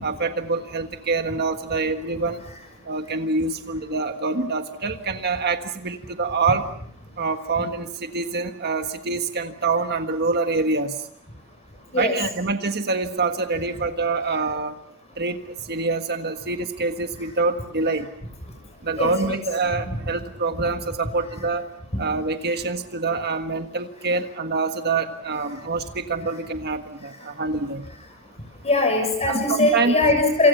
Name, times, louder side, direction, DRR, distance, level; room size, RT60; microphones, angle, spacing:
voice 1, 0.0-2.4 2.8-6.6 7.2-11.0 11.9-14.7 15.2-15.4 15.7-18.1 18.8-21.7 22.0-27.8 29.3-29.9, right 3 dB, 45° right, 6 dB, 1.6 m, -25 dB
voice 2, 19.0-19.4 28.6-30.5, left 2 dB, 30° left, 4 dB, 6.8 m, -20 dB
28.0 x 27.5 x 5.7 m, 0.67 s
head